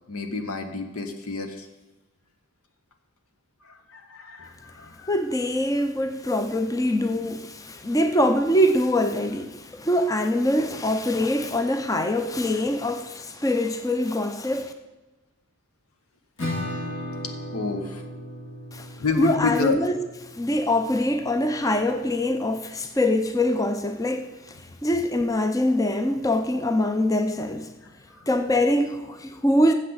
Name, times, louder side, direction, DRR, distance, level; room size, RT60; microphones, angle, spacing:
voice 1, 0.1-1.7 3.6-5.1 17.5-18.0 19.0-19.8, left 4 dB, 85° left, 1.2 m, -28 dB
voice 2, 5.1-14.7 18.7-18.9 19.2-20.0 20.3-27.7 28.3-29.7, left 1 dB, 15° left, 0.5 m, -24 dB
Acoustic guitar / Strum, 16.4-21.8, left 1 dB, 60° left, 2.1 m, -36 dB
13.5 x 7.5 x 4.0 m
head